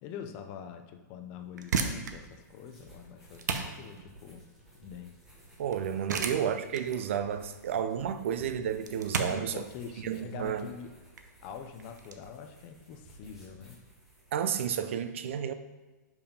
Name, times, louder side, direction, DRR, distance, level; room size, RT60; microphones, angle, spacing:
voice 1, 0.0-4.5 4.8-5.2 6.1-6.3 9.2-10.9 11.4-13.8, left 7 dB, 20° left, 6 dB, 0.4 m, -44 dB
sound 1, 1.4-12.2, right 5 dB, 70° right, 0.8 m, -37 dB
sound 2, 2.0-14.7, right 1 dB, 5° right, 1.0 m, -56 dB
voice 2, 5.6-9.6 10.0-10.7 14.3-15.5, right 8 dB, 40° right, 11 dB, 0.4 m, -31 dB
5.4 x 4.7 x 5.0 m, 1.2 s
hypercardioid pair, 175°, 10 cm